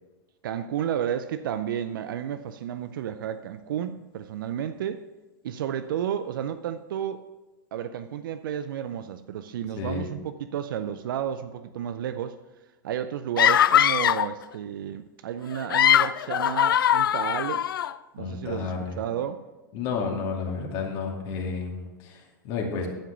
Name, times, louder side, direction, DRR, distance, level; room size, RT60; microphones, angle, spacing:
voice 1, 0.4-5.0 5.4-7.3 7.7-12.4 12.8-17.7 18.1-19.4, right 9 dB, 75° right, 11 dB, 0.5 m, -32 dB
voice 2, 9.8-10.1 18.2-19.0 19.7-22.9, left 5 dB, 50° left, -1 dB, 2.4 m, -31 dB
sound 1, 13.4-14.3 15.5-17.9, left 10 dB, 90° left, 0.4 m, -21 dB
11.5 x 6.0 x 5.8 m, 1.1 s
hypercardioid pair, 110°, 11 cm